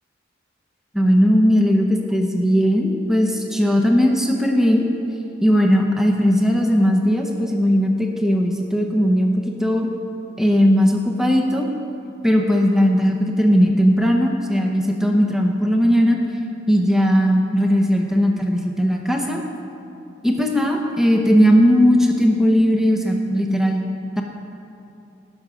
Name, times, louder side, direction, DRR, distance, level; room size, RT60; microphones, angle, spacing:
voice 1, 0.9-4.8 5.4-9.3 9.6-9.9 10.4-11.7 12.2-16.2 16.7-19.4 20.2-23.8, equal, 5° right, 1 dB, 0.8 m, -18 dB
18.0 x 6.2 x 5.1 m, 2.8 s
head